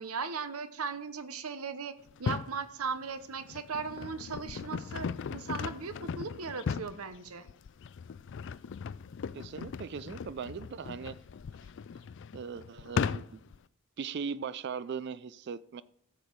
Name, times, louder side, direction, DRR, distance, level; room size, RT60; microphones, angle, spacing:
voice 1, 0.0-7.5, right 5 dB, 85° right, 0.9 m, -38 dB
sound 1, 2.1-2.6 3.2-13.6, left 6 dB, 55° left, 0.4 m, -38 dB
voice 2, 9.3-11.2 12.3-13.4 14.0-15.8, right 6 dB, 50° right, 0.4 m, -39 dB
14.0 x 7.0 x 4.7 m
head